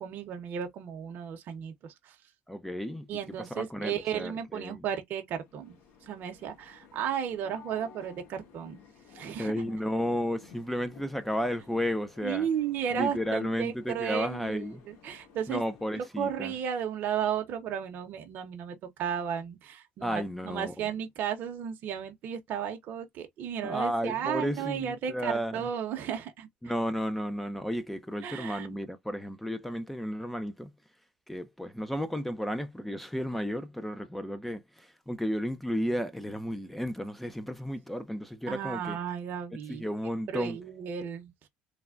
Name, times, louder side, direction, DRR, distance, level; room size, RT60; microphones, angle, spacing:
voice 1, 0.0-2.2 3.1-5.7 6.0-8.8 9.1-9.5 12.2-15.6 15.9-26.5 28.2-28.8 38.5-39.9 40.3-41.3, right 8 dB, 55° right, 0.7 m, -34 dB
voice 2, 2.5-4.8 9.4-12.5 12.9-14.8 15.5-16.5 20.0-20.7 23.6-25.7 26.6-30.7 31.3-39.0 39.7-40.6, equal, 5° left, 0.4 m, -33 dB
sound 1, 5.4-16.2, left 6 dB, 70° left, 1.1 m, -54 dB
3.3 x 2.1 x 2.4 m
cardioid pair, 110°, 4 cm